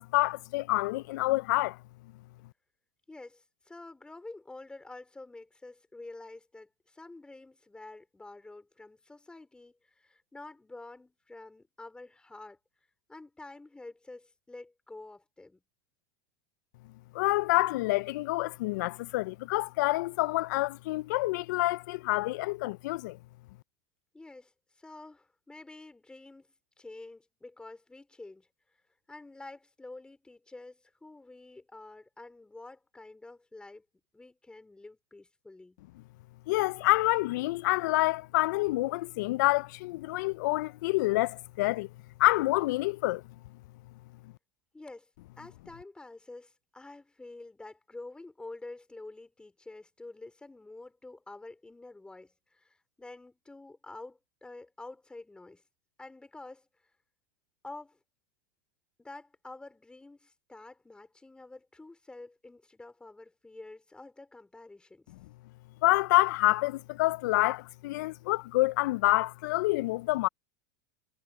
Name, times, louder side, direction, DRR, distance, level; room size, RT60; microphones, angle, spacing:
voice 1, 0.0-1.8 17.1-23.2 36.5-41.9 42.2-43.2 65.8-70.3, left 20 dB, 70° left, 0.4 m, -27 dB
voice 2, 3.1-12.6 13.1-15.6 24.1-24.5 24.8-26.5 26.8-28.5 29.1-33.8 34.1-35.8 44.7-45.1 45.4-55.6 56.0-56.7 57.6-58.0 59.0-65.1, left 2 dB, 10° left, 4.4 m, -48 dB
hypercardioid pair, 115°, 10 cm